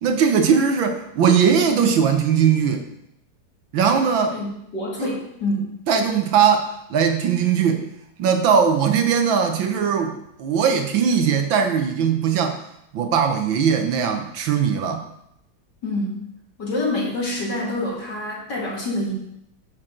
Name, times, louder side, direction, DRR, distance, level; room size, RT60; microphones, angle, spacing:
voice 1, 0.0-2.8 3.7-4.4 5.0-5.2 5.9-7.8 8.2-10.1 10.4-12.6 12.9-15.0, right 7 dB, 65° right, 5 dB, 1.6 m, -19 dB
voice 2, 4.3-5.7 15.8-16.2 16.6-19.1, left 1 dB, 50° left, -4 dB, 2.7 m, -26 dB
11.0 x 6.3 x 3.8 m, 0.77 s
omnidirectional pair, 2.4 m